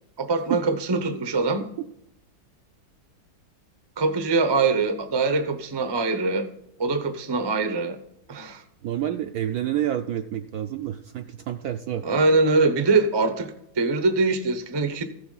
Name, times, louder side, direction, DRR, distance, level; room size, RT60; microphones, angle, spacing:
voice 1, 0.2-1.6 4.0-6.5 6.8-8.0 8.3-8.6 12.0-15.0, right 3 dB, 40° right, 8 dB, 0.3 m, -23 dB
voice 2, 8.8-12.1, right 11 dB, 75° right, 8 dB, 0.8 m, -28 dB
14.5 x 7.0 x 3.9 m, 0.80 s
omnidirectional pair, 2.0 m